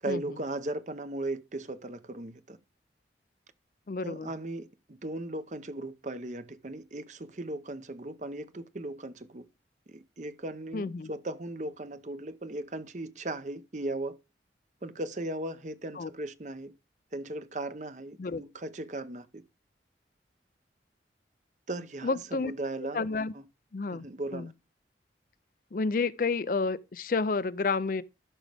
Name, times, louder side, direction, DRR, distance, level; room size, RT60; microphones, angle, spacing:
voice 1, 0.0-2.6 4.0-9.5 9.9-14.2 14.8-16.7 17.1-19.4 21.7-23.0 23.3-23.4 23.9-24.5, right 2 dB, 40° right, 0.7 m, -37 dB
voice 2, 3.9-4.3 10.7-11.1 16.0-16.1 18.2-18.4 22.0-22.5 22.9-23.3 23.7-24.1 24.3-24.5 25.7-28.0, left 4 dB, 50° left, 0.4 m, -30 dB
13.5 x 6.3 x 3.4 m
head